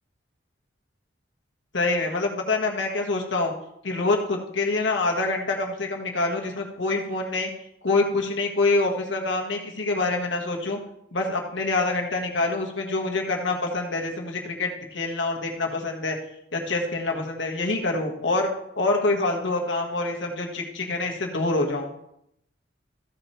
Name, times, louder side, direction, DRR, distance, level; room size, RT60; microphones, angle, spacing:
voice 1, 1.7-3.5 3.8-7.5 7.8-10.8 11.1-16.2 16.5-18.5 18.7-21.9, left 2 dB, 70° left, 1 dB, 1.6 m, -26 dB
14.5 x 5.2 x 4.4 m, 0.78 s
head